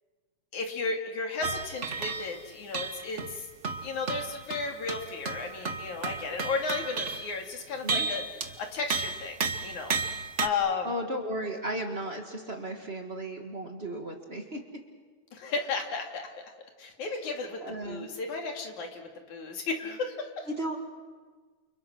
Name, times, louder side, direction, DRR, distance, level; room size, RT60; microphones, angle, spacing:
voice 1, 0.5-3.5 3.8-9.4 9.6-9.9 10.4-10.9 15.3-16.4 16.8-20.5, left 4 dB, 70° left, 3 dB, 4.1 m, -34 dB
sound 1, 1.4-2.4 2.7-7.4 7.9-8.6 8.9-10.5, right 4 dB, 60° right, 0.7 m, -33 dB
voice 2, 10.8-14.6 17.6-18.1 20.5-20.8, right 1 dB, 25° right, 3 dB, 1.7 m, -35 dB
29.5 x 29.5 x 6.3 m, 1.5 s
omnidirectional pair, 3.5 m